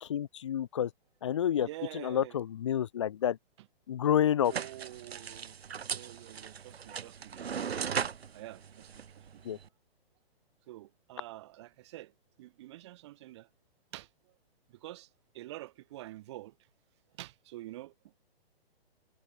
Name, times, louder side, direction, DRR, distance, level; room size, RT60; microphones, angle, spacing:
voice 1, 0.0-0.9 1.2-1.7 1.9-3.4 3.9-4.5 9.4-9.6, left 10 dB, 30° left, 0.9 m, -29 dB
voice 2, 1.6-2.4 4.5-5.6 5.9-8.0 8.3-9.4 10.7-13.5 13.9-14.3 14.7-16.7 17.1-18.1, right 16 dB, 25° right, 5.6 m, -47 dB
sound 1, 4.4-9.7, right 7 dB, 70° right, 3.4 m, -38 dB
hypercardioid pair, 175°, 32 cm